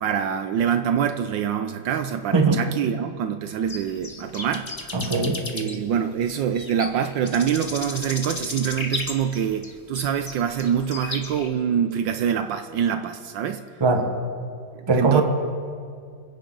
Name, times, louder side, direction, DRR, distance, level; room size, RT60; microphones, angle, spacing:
voice 1, 0.0-4.7 5.5-13.6 14.7-15.2, right 8 dB, 75° right, 8 dB, 1.2 m, -25 dB
sound 1, 3.7-11.5, left 2 dB, 20° left, 0.7 m, -34 dB
voice 2, 4.9-5.4 13.8-14.1 14.9-15.2, right 4 dB, 15° right, 4 dB, 1.0 m, -20 dB
27.0 x 10.0 x 3.9 m, 2.2 s
omnidirectional pair, 2.2 m